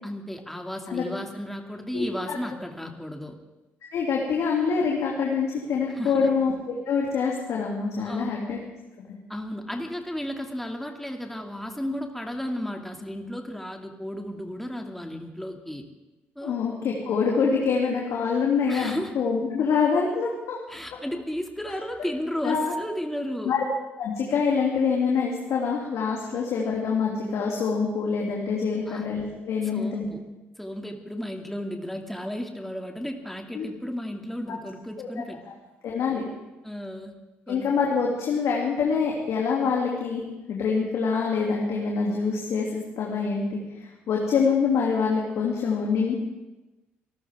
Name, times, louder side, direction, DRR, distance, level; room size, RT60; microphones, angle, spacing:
voice 1, 0.0-3.4 5.9-6.3 8.0-8.3 9.3-15.8 16.4-16.6 18.7-19.1 20.7-23.5 28.9-29.1 29.6-30.2 30.6-35.4 36.6-37.2 37.5-37.7, equal, 5° left, 3 dB, 2.4 m, -34 dB
voice 2, 1.9-2.4 3.9-6.5 6.8-8.6 16.4-20.6 22.4-22.7 23.4-23.6 24.0-30.0 33.5-33.7 35.0-35.1 35.8-36.2 37.5-40.2 40.5-46.3, left 5 dB, 60° left, -2 dB, 2.7 m, -25 dB
26.5 x 14.0 x 3.6 m, 1.1 s
hypercardioid pair, 50°, 6 cm